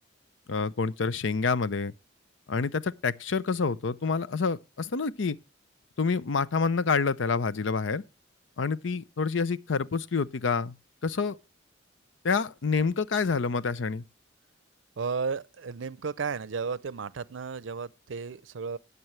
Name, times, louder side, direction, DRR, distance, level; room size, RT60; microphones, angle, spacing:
voice 1, 0.5-1.9 2.5-5.4 6.0-8.0 8.6-10.7 11.0-11.4 12.2-14.0, left 4 dB, 85° left, 0.6 m, -27 dB
voice 2, 15.0-18.8, right 5 dB, 85° right, 0.5 m, -33 dB
19.5 x 6.9 x 3.2 m
head